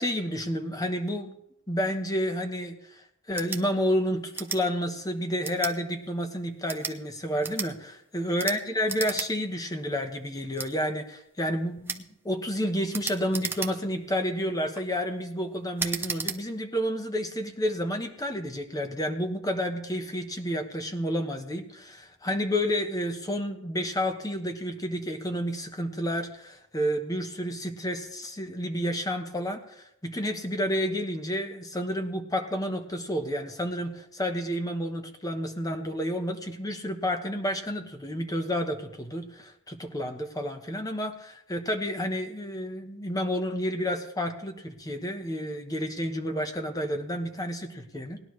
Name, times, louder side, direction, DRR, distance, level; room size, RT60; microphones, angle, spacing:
voice 1, 0.0-1.3 1.7-48.2, equal, 15° left, 5 dB, 1.1 m, -30 dB
sound 1, 3.3-3.6 4.3-4.6 5.4-5.8 6.6-7.0 7.4-7.7 8.4-8.6 8.9-9.3 9.6-9.7 10.6-10.7 11.9-12.0 12.9-14.0 14.5-14.8 15.8-16.4, right 4 dB, 10° right, 0.7 m, -33 dB
19.5 x 11.0 x 3.2 m, 0.79 s
head